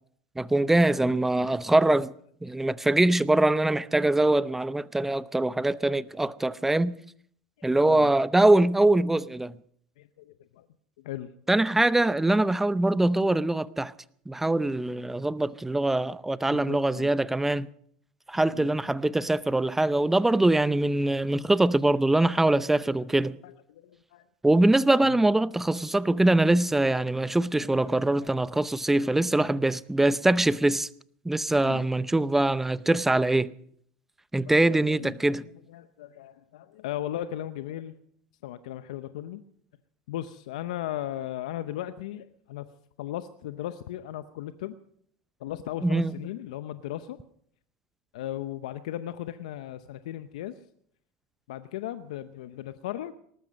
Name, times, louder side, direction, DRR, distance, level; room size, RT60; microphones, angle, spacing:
voice 1, 0.4-2.1 2.4-6.9 7.6-9.5 11.5-13.9 14.3-17.7 18.3-23.4 24.4-30.9 31.2-33.5 34.3-35.5 45.8-46.1, right 2 dB, 10° right, 0.6 m, -23 dB
voice 2, 7.6-8.1 10.0-10.6 11.0-11.3 16.5-17.1 18.5-18.7 23.0-23.1 23.4-24.2 25.0-25.2 27.5-28.3 29.0-29.4 31.6-31.9 33.4-33.5 34.5-35.2 35.4-37.9 38.4-39.4 40.1-42.7 43.0-44.7 45.4-47.2 48.1-50.5 51.5-53.1, left 12 dB, 80° left, 0.7 m, -37 dB
19.0 x 13.5 x 5.2 m
hypercardioid pair, 90°, 4 cm